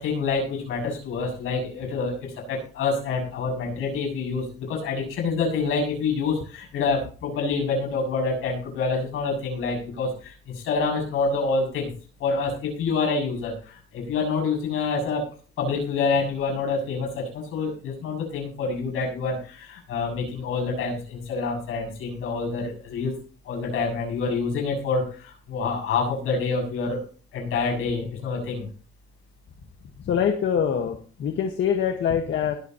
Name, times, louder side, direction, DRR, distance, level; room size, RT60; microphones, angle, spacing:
voice 1, 0.0-11.9 12.2-15.3 15.6-23.1 23.4-27.0 27.3-28.7, left 4 dB, 90° left, 0 dB, 7.3 m, -27 dB
voice 2, 30.0-32.5, left 8 dB, 65° left, 3 dB, 1.6 m, -24 dB
21.0 x 8.4 x 3.0 m, 0.40 s
cardioid pair, 135°, 21 cm